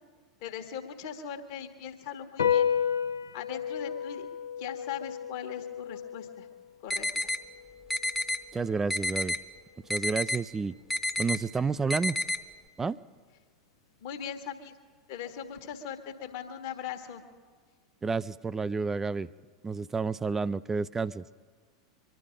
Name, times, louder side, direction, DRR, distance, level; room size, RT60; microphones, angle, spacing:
voice 1, 0.4-2.7 3.3-4.3 4.6-6.5 6.8-7.3 14.0-14.7 15.1-17.2, left 8 dB, 50° left, 3 dB, 1.5 m, -40 dB
sound 1, 2.4-9.1, left 8 dB, 70° left, 0.6 m, -33 dB
sound 2, 6.9-7.4 7.9-8.4 8.9-9.4 9.9-10.4 10.9-11.4 11.9-12.4, left 1 dB, 5° left, 1.0 m, -29 dB
voice 2, 8.5-9.4 9.9-10.8 11.2-12.2 12.8-13.0 18.0-19.3 19.6-21.2, right 4 dB, 15° right, 17 dB, 0.4 m, -30 dB
24.0 x 11.5 x 5.1 m, 1.5 s
figure-of-eight pair, 85°, 2 cm